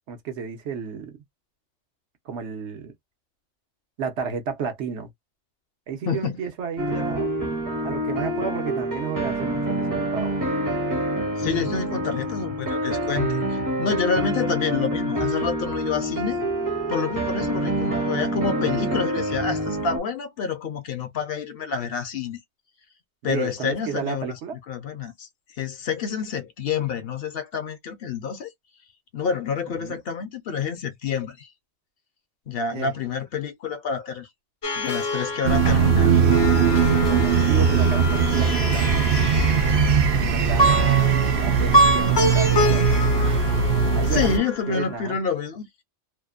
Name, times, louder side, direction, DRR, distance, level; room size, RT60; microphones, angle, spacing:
voice 1, 0.1-1.2 2.3-2.9 4.0-5.1 5.9-7.3 7.8-10.4 23.2-24.6 29.7-30.0 32.7-32.9 37.1-39.1 40.2-41.1 41.4-42.9 44.0-44.3 44.7-45.2, right 6 dB, 80° right, 1.1 m, -32 dB
voice 2, 6.1-6.4 11.4-16.4 16.9-22.4 23.2-24.4 24.7-25.3 25.6-28.5 29.1-31.5 32.5-34.3 34.8-36.2 39.6-40.0 44.1-45.8, left 6 dB, 60° left, 0.8 m, -28 dB
sound 1, 6.8-20.0, right 1 dB, 20° right, 0.6 m, -26 dB
Plucked string instrument, 34.6-45.0, equal, 35° left, 0.4 m, -26 dB
sound 2, 35.4-44.4, right 6 dB, 60° right, 0.7 m, -20 dB
2.7 x 2.1 x 2.3 m
omnidirectional pair, 1.2 m